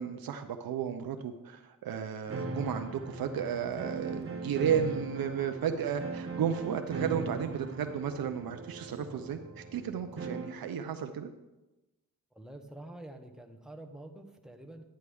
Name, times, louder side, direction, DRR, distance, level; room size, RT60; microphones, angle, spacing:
voice 1, 0.0-11.3, right 8 dB, 80° right, 7 dB, 0.7 m, -33 dB
sound 1, 2.3-10.7, right 3 dB, 40° right, 0.9 m, -39 dB
voice 2, 12.3-14.8, right 1 dB, ahead, 2 dB, 1.1 m, -47 dB
11.5 x 9.4 x 3.5 m, 1.0 s
wide cardioid pair, 110°, 35 cm